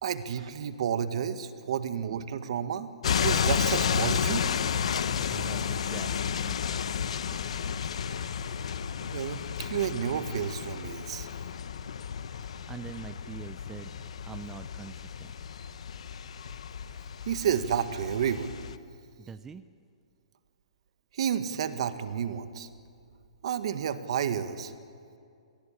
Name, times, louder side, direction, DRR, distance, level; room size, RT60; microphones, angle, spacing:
voice 1, 0.0-4.5 9.0-11.3 17.3-18.6 21.1-22.7 23.4-24.7, right 8 dB, 60° right, 10 dB, 1.7 m, -31 dB
sound 1, 3.0-18.8, left 7 dB, 70° left, 1.1 m, -32 dB
voice 2, 5.3-6.8 12.7-13.9 14.2-15.3 19.2-19.6, right 6 dB, 10° right, 11 dB, 0.6 m, -44 dB
26.0 x 19.5 x 8.8 m, 2.4 s
hypercardioid pair, 140°, 3 cm